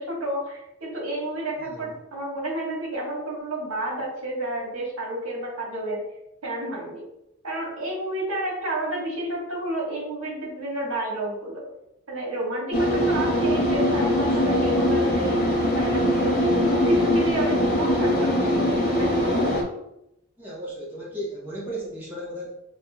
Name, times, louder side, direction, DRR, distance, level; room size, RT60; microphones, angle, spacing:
voice 1, 0.0-6.0 6.4-7.0 7.4-11.7 12.1-15.4 15.7-19.4, right 1 dB, 85° right, -2 dB, 1.4 m, -30 dB
sound 1, 12.7-19.6, left 1 dB, 40° left, 0.9 m, -22 dB
voice 2, 20.4-22.5, right 1 dB, 10° right, -6 dB, 0.8 m, -35 dB
6.0 x 2.5 x 2.3 m, 0.84 s
head